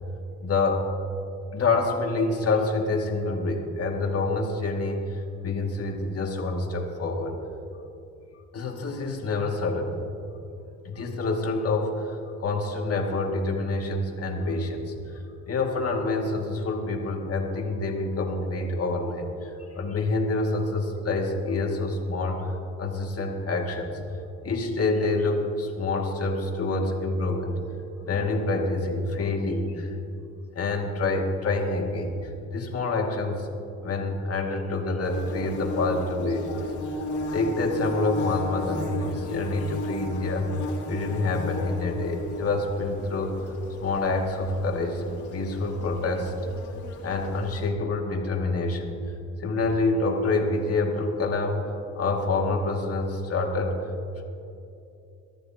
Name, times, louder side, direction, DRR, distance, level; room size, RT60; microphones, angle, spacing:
voice 1, 0.4-0.9 1.5-7.4 8.5-10.0 10.8-15.1 15.5-22.5 22.8-24.0 24.4-27.6 28.1-29.9 30.5-33.5 33.8-36.7 37.3-40.5 40.9-43.4 43.8-45.0 45.3-46.3 47.0-49.0 49.4-53.8 54.2-54.3, left 3 dB, 50° left, 1 dB, 2.3 m, -27 dB
Bird / Buzz, 35.0-47.7, left 2 dB, 75° left, 2.2 m, -35 dB
23.0 x 13.5 x 2.9 m, 2.7 s
cardioid pair, 90°, 30 cm